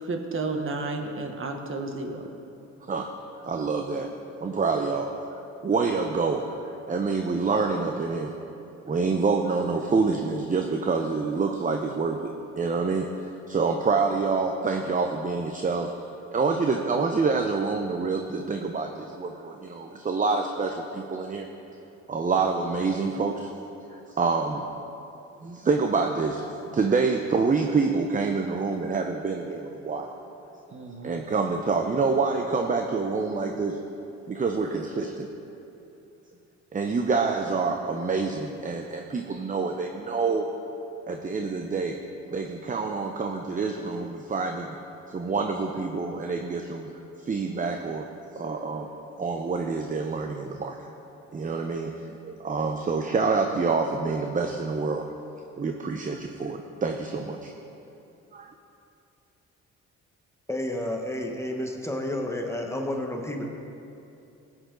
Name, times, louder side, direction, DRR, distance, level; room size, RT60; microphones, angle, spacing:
voice 1, 0.0-2.3 30.7-31.2 34.6-34.7, right 3 dB, 45° right, 4 dB, 1.3 m, -32 dB
voice 2, 3.4-4.1 4.4-8.3 8.8-12.3 12.6-13.2 13.5-15.9 16.3-21.5 22.1-23.5 23.9-24.7 25.4-30.1 31.0-33.8 34.3-35.3 36.7-40.4 41.1-42.0 42.3-44.8 45.1-46.9 47.2-48.0 48.4-48.9 49.2-50.8 51.3-55.1 55.6-57.5 58.3-58.5, right 4 dB, 25° right, 4 dB, 0.7 m, -27 dB
voice 3, 60.5-63.5, left 1 dB, 10° left, 1 dB, 1.2 m, -30 dB
15.5 x 8.9 x 3.9 m, 2.8 s
cardioid pair, 90°, 30 cm